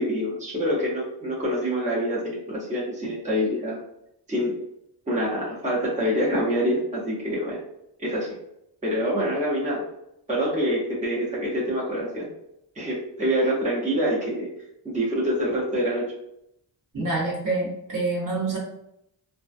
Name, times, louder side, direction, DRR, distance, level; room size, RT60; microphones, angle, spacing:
voice 1, 0.0-3.8 4.3-4.5 5.1-7.6 8.0-8.4 8.8-9.9 10.3-12.3 12.7-14.5 14.8-16.1, equal, 15° right, -6 dB, 0.9 m, -26 dB
voice 2, 16.9-18.6, right 3 dB, 50° right, -5 dB, 1.1 m, -26 dB
2.3 x 2.2 x 2.5 m, 0.79 s
cardioid pair, 70°, 41 cm